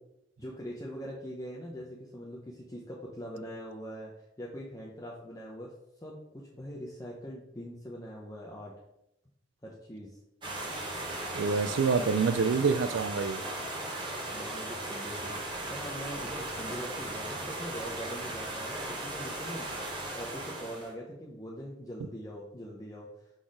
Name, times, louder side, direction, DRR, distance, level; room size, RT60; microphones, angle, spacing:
voice 1, 0.4-4.1 4.4-5.7 6.0-8.7 9.6-10.2 14.3-23.3, equal, 20° left, -4 dB, 0.8 m, -42 dB
sound 1, 10.4-20.9, right 2 dB, 25° right, 1.3 m, -37 dB
voice 2, 11.3-13.4, right 5 dB, 80° right, 12 dB, 0.4 m, -26 dB
6.0 x 4.0 x 4.8 m, 0.85 s
head